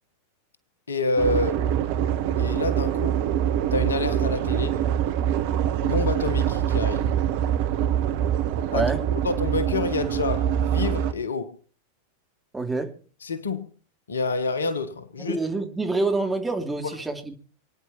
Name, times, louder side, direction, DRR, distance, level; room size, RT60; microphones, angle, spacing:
voice 1, 0.9-1.6 2.4-3.2 3.7-4.9 5.8-7.1 8.7-8.9 9.2-11.6 13.2-13.7 14.1-15.4, left 3 dB, 70° left, 1.4 m, -28 dB
sound 1, 1.2-11.1, right 10 dB, 50° right, 1.2 m, -24 dB
voice 2, 8.7-9.0 12.5-12.9 15.2-17.3, right 3 dB, 10° right, 2.7 m, -26 dB
28.0 x 9.8 x 4.3 m
figure-of-eight pair, 90°, 0 cm